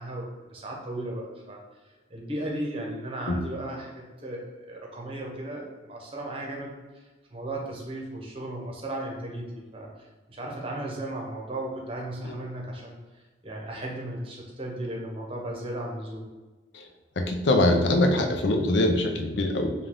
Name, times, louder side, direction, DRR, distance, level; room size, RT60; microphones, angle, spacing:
voice 1, 0.0-1.6 2.1-16.3, right 1 dB, 30° right, -2 dB, 0.9 m, -36 dB
voice 2, 17.2-19.7, left 1 dB, 65° left, 4 dB, 0.5 m, -23 dB
5.2 x 2.3 x 3.7 m, 1.2 s
head